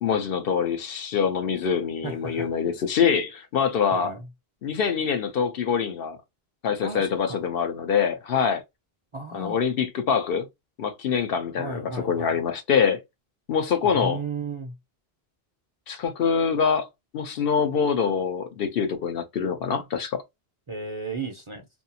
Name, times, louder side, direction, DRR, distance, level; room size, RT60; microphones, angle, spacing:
voice 1, 0.0-4.1 4.6-6.2 6.6-8.6 9.3-10.5 10.8-13.0 13.5-14.2 15.9-16.9 17.1-20.2, left 6 dB, 70° left, 0.8 m, -25 dB
voice 2, 2.0-2.5 3.9-4.3 6.8-7.4 9.1-9.7 11.6-12.4 13.8-14.7 20.7-21.7, right 3 dB, 40° right, 0.5 m, -34 dB
2.6 x 2.3 x 2.7 m
omnidirectional pair, 1.0 m